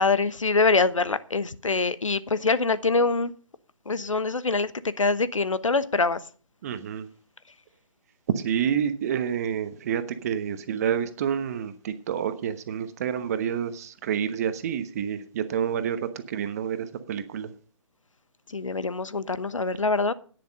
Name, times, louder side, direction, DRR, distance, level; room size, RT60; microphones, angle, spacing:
voice 1, 0.0-3.3 3.9-4.7 5.0-6.2 18.5-20.1, left 3 dB, 70° left, 16 dB, 1.0 m, -24 dB
voice 2, 6.6-7.1 8.4-16.0 16.3-17.5, right 8 dB, 30° right, 11 dB, 1.1 m, -28 dB
10.5 x 9.9 x 5.3 m, 0.40 s
figure-of-eight pair, 140°, 17 cm